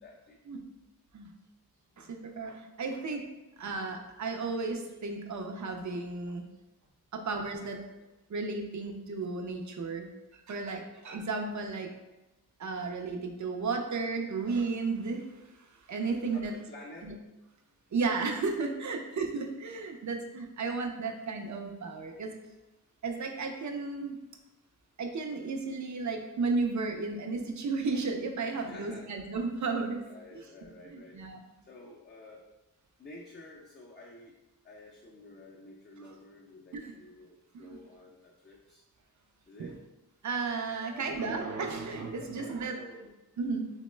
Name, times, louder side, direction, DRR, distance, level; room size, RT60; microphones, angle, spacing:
voice 1, 0.0-0.4 1.9-2.1 16.3-17.2 28.6-29.1 30.1-31.2 31.7-32.5 33.0-34.4 34.6-38.8 39.5-39.8 40.8-41.4 42.2-43.0, left 2 dB, 25° left, -3 dB, 0.4 m, -51 dB
voice 2, 2.0-3.3 3.6-6.4 7.1-7.8 8.3-10.1 10.5-11.9 12.6-15.3 15.9-16.6 17.0-17.1 17.9-22.3 23.0-24.2 25.0-30.0 30.3-30.4 30.9-31.4 36.0-36.2 36.7-36.9 37.5-37.8 39.6-39.7 40.2-42.8 43.4-43.7, right 4 dB, 50° right, 4 dB, 0.5 m, -33 dB
2.9 x 2.1 x 3.2 m, 1.0 s
cardioid pair, 50°, 39 cm